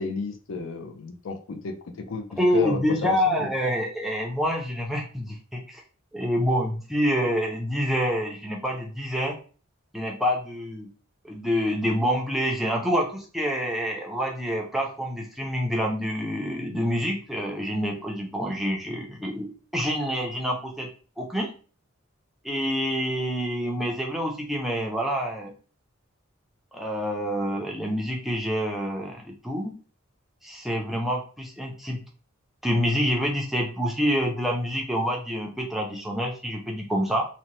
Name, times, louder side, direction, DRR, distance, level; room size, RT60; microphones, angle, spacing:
voice 1, 0.0-3.5, left 4 dB, 70° left, 5 dB, 0.4 m, -32 dB
voice 2, 2.4-5.8 6.1-9.4 9.9-10.9 11.2-20.9 21.2-21.5 22.4-25.5 26.7-29.7 30.4-32.0 32.6-37.3, equal, ahead, -1 dB, 0.4 m, -27 dB
2.7 x 2.1 x 2.9 m, 0.38 s
head